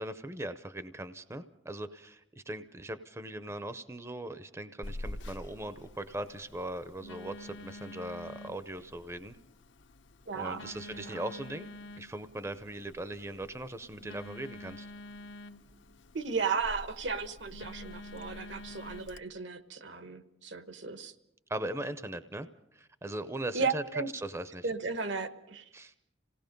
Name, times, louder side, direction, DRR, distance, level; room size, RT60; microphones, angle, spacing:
voice 1, 0.0-9.4 10.3-11.7 12.0-14.9 21.5-22.5 22.8-24.7 25.7-25.9, right 1 dB, 15° right, 11 dB, 0.6 m, -39 dB
Telephone, 4.8-19.2, left 1 dB, 75° left, 1.0 m, -47 dB
voice 2, 10.3-11.3 16.1-21.1 23.5-24.1 24.6-25.6, right 5 dB, 70° right, 10 dB, 1.3 m, -35 dB
27.5 x 18.0 x 5.3 m, 0.79 s
head